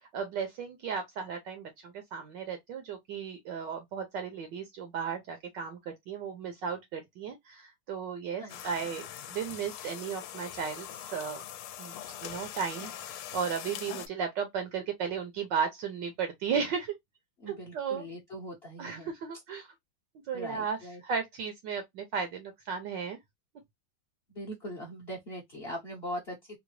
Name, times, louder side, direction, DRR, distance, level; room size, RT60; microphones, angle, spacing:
voice 1, 0.1-11.4 11.8-11.9 12.2-16.9 17.5-18.0 18.8-19.7 20.3-20.8 21.0-23.2, right 6 dB, 70° right, 1.2 m, -35 dB
sound 1, 8.5-14.1, left 10 dB, 80° left, 1.4 m, -42 dB
voice 2, 17.4-19.1 20.3-21.0 24.3-26.6, equal, 40° left, 0.9 m, -41 dB
3.8 x 2.1 x 2.9 m
omnidirectional pair, 2.3 m